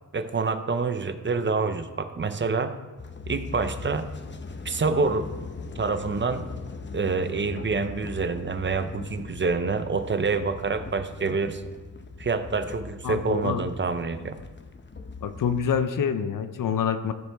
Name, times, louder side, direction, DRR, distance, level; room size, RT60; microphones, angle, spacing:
voice 1, 0.1-2.8 3.3-4.1 4.6-5.3 5.8-6.5 6.9-11.6 12.2-14.3, right 4 dB, 35° right, 9 dB, 0.7 m, -27 dB
sound 1, 3.0-15.8, left 4 dB, 35° left, 0.8 m, -40 dB
voice 2, 13.0-13.6 15.2-17.1, left 7 dB, 80° left, 10 dB, 0.7 m, -26 dB
13.5 x 7.2 x 3.5 m, 1.3 s
wide cardioid pair, 90°, 32 cm